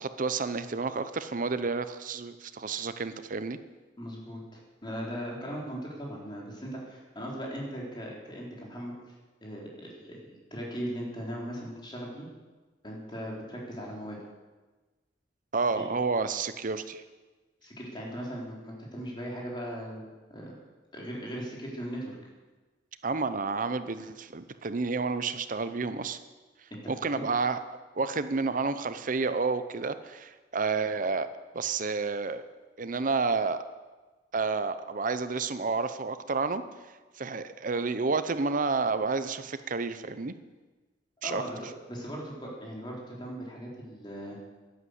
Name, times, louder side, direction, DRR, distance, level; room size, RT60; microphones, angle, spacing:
voice 1, 0.0-3.6 15.5-17.0 23.0-26.2 26.9-27.6 28.0-31.3 31.5-32.4 32.8-33.6 34.3-36.6 37.2-40.3 41.2-41.4, right 4 dB, 45° right, 11 dB, 0.7 m, -30 dB
voice 2, 4.0-8.9 9.4-12.3 12.8-14.2 15.8-15.9 17.6-20.5 20.9-22.2 26.7-27.2 41.2-41.6 41.9-44.4, equal, 25° left, -2 dB, 3.7 m, -38 dB
11.5 x 11.0 x 7.9 m, 1.2 s
head